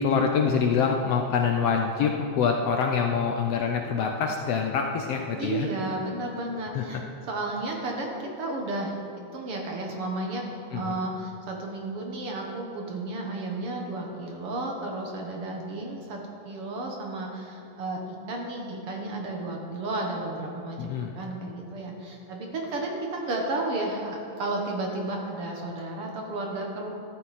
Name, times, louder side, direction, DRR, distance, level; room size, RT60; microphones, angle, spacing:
voice 1, 0.0-5.7 6.7-6.8 10.7-11.0 20.8-21.1, left 6 dB, 70° left, 2 dB, 1.6 m, -25 dB
voice 2, 5.4-7.0 7.3-9.0 9.3-16.2 16.5-26.9, right 2 dB, 55° right, 0 dB, 2.0 m, -33 dB
14.0 x 12.5 x 4.3 m, 2.6 s
omnidirectional pair, 3.4 m